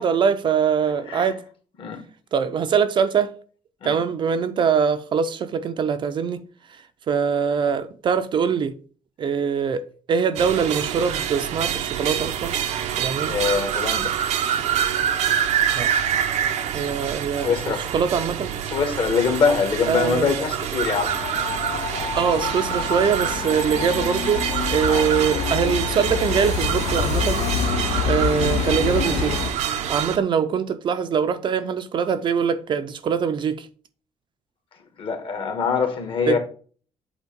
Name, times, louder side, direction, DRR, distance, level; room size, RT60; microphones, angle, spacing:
voice 1, 0.0-1.4 2.3-3.3 3.8-6.4 6.7-8.8 9.2-9.8 10.1-12.6 13.0-13.3 15.7-15.9 16.7-17.5 17.9-18.6 19.9-20.3 22.2-27.6 28.0-29.4 29.9-33.7 36.3-36.4, right 7 dB, 45° right, 0.5 m, -23 dB
sound 1, 10.4-30.2, right 9 dB, 80° right, 0.7 m, -26 dB
voice 2, 13.3-14.2 17.4-17.8 18.7-21.2 24.9-25.1 35.0-36.4, left 5 dB, 50° left, 1.5 m, -23 dB
sound 2, 21.1-29.5, left 7 dB, 80° left, 0.8 m, -27 dB
8.0 x 2.8 x 5.2 m
cardioid pair, 145°, 12 cm